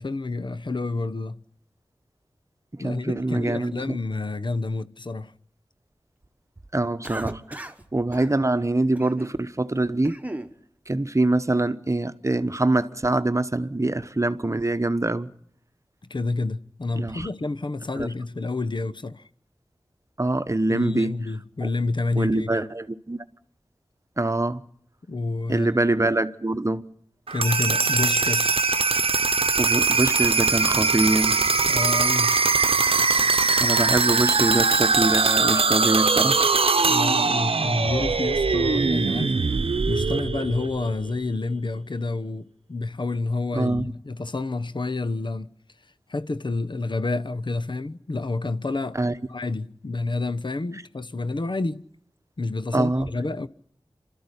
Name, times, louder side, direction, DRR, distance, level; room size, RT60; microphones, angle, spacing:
voice 1, 0.0-1.4 2.8-5.3 16.1-19.2 20.7-22.7 25.1-25.7 27.3-28.6 31.7-32.4 36.8-39.4 39.9-45.5 46.1-49.0 49.3-51.8 52.4-53.5, left 3 dB, 55° left, 0.9 m, -29 dB
voice 2, 2.8-4.0 6.7-7.6 7.9-10.2 10.9-15.3 16.9-17.3 18.0-18.1 20.2-21.2 22.2-23.2 24.2-24.6 25.5-26.9 29.6-31.4 33.6-36.5 43.5-43.9 48.9-49.1 52.7-53.1, right 2 dB, 30° right, 1.0 m, -24 dB
Cough, 7.0-7.8 8.1-8.3 8.9-9.4 9.8-10.5, right 1 dB, 15° right, 1.5 m, -36 dB
sound 1, 27.3-41.1, right 4 dB, 70° right, 0.8 m, -21 dB
27.5 x 13.5 x 9.8 m
wide cardioid pair, 55°, 10 cm